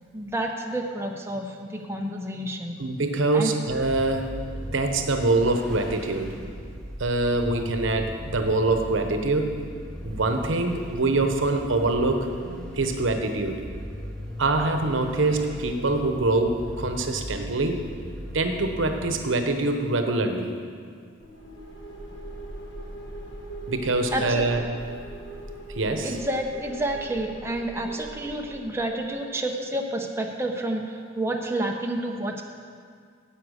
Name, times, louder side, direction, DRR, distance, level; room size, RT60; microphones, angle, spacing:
voice 1, 0.1-2.8 3.3-3.5 24.1-24.4 26.0-32.4, right 1 dB, 15° right, 1 dB, 0.7 m, -29 dB
voice 2, 2.8-4.3 4.7-6.4 7.0-9.5 10.0-12.3 12.7-13.6 14.4-17.8 18.3-20.5 23.7-24.6 25.7-26.2, right 2 dB, 80° right, 6 dB, 1.0 m, -24 dB
Vehicle, 3.7-19.6, equal, 5° left, 1.2 m, -38 dB
sound 1, 21.2-29.0, right 1 dB, 65° left, 1.3 m, -41 dB
10.0 x 8.2 x 6.4 m, 2.1 s
head